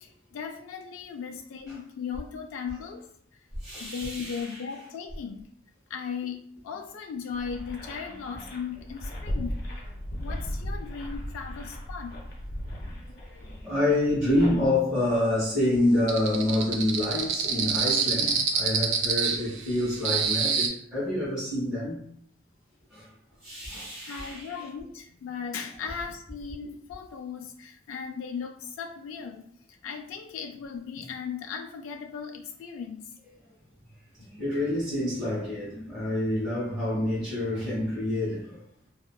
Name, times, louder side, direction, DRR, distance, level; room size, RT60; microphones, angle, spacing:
voice 1, 0.0-3.1 3.8-5.5 5.9-9.6 10.2-12.2 24.1-33.0, left 6 dB, 90° left, 0.3 m, -37 dB
voice 2, 3.6-4.5 9.3-9.4 13.3-22.0 22.9-23.1 23.4-24.6 34.3-38.6, left 1 dB, 5° right, 1.4 m, -27 dB
sound 1, 7.3-14.7, equal, 50° left, 0.7 m, -37 dB
sound 2, 16.1-20.7, right 6 dB, 75° right, 0.5 m, -26 dB
3.8 x 2.2 x 2.3 m
head